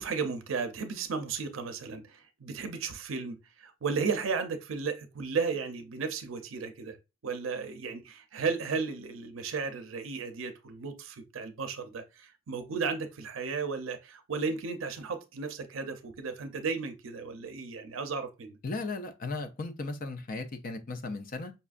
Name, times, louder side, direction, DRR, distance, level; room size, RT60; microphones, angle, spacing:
voice 1, 0.0-7.0 7.2-18.6, right 5 dB, 80° right, 0.5 m, -34 dB
voice 2, 18.6-21.5, left 3 dB, 45° left, 0.5 m, -36 dB
5.3 x 2.4 x 2.4 m
head